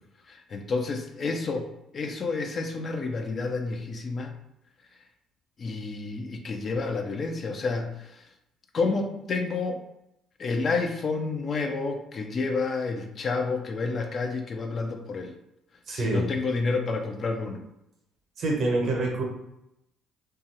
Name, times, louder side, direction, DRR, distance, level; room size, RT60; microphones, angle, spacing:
voice 1, 0.3-1.7 1.9-4.3 5.6-8.2 8.7-9.8 10.4-15.3 15.9-17.6, left 3 dB, 45° left, 4 dB, 0.4 m, -29 dB
voice 2, 15.9-16.3 18.4-19.2, right 2 dB, 55° right, 1 dB, 0.7 m, -26 dB
2.9 x 2.3 x 2.8 m, 0.85 s
hypercardioid pair, 50°, 0 cm